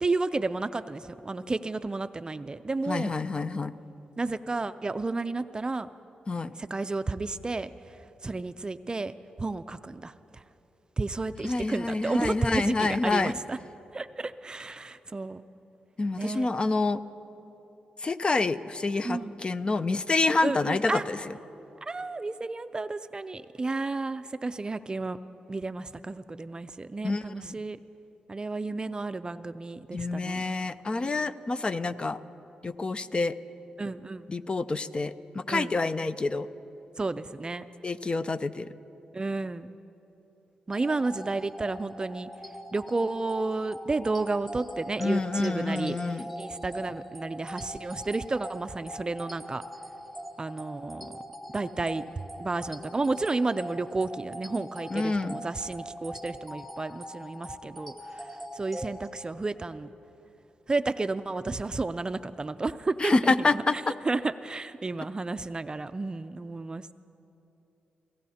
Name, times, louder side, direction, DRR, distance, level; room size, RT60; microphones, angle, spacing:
voice 1, 0.0-3.1 4.2-5.9 6.6-8.0 8.2-10.4 11.0-13.6 13.9-15.4 16.2-16.5 19.0-19.4 20.4-21.0 21.8-25.2 25.5-27.8 28.3-30.5 33.8-34.3 35.5-35.8 37.0-37.7 39.1-39.8 40.7-42.3 42.7-49.6 50.4-51.1 51.5-59.9 60.7-63.6 64.0-66.9, right 3 dB, 30° right, 12 dB, 0.4 m, -32 dB
voice 2, 2.9-3.7 6.3-6.5 11.4-13.3 16.0-17.0 18.0-21.2 27.0-27.5 29.9-32.2 32.6-33.4 34.3-36.5 37.8-38.7 45.0-46.3 54.9-55.4 63.0-63.7, left 3 dB, 35° left, 12 dB, 0.5 m, -27 dB
sound 1, 40.7-59.2, equal, 5° left, 1.3 m, -42 dB
30.0 x 16.5 x 2.8 m, 3.0 s
cardioid pair, 65°, 3 cm